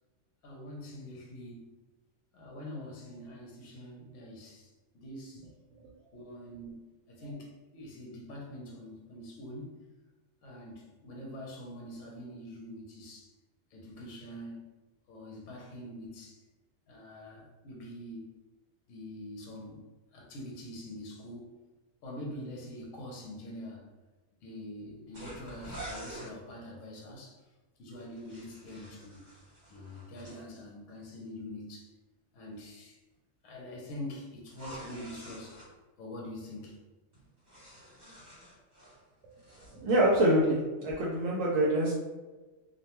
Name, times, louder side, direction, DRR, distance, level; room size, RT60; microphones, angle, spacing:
voice 1, 0.4-1.7 2.3-4.7 4.9-5.5 6.1-9.8 10.4-13.3 13.7-14.7 15.1-16.4 16.9-18.3 18.9-19.8 20.1-21.6 22.0-23.9 24.4-27.4 27.8-29.2 29.7-31.9 32.3-33.0 33.4-35.6 36.0-36.8, left 1 dB, 70° left, -1 dB, 1.0 m, -44 dB
sound 1, 25.1-26.3 28.0-30.4 34.5-35.7 37.1-39.0 39.3-39.8, right 1 dB, 35° right, 1.2 m, -47 dB
voice 2, 39.8-41.9, right 1 dB, 75° right, -4 dB, 0.9 m, -25 dB
2.5 x 2.1 x 2.9 m, 1.2 s
omnidirectional pair, 1.4 m